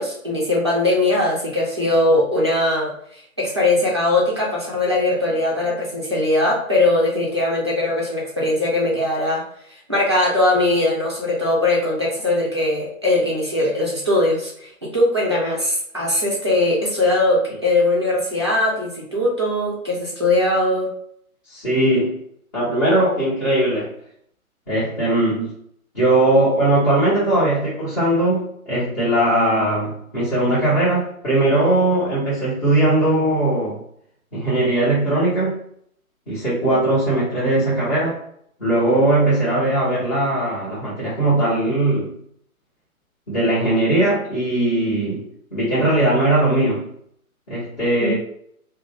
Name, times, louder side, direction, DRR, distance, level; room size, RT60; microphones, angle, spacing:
voice 1, 0.0-9.4 9.7-20.9 36.6-36.7 48.0-48.1, left 2 dB, 20° right, -6 dB, 0.4 m, -20 dB
voice 2, 21.5-22.1 22.5-23.9 24.7-25.5 25.9-33.8 34.3-35.6 36.3-38.2 38.6-42.1 43.3-45.2 45.5-46.9 47.5-48.1, right 1 dB, 25° left, -11 dB, 1.1 m, -19 dB
2.5 x 2.2 x 3.3 m, 0.67 s
figure-of-eight pair, 135°, 43 cm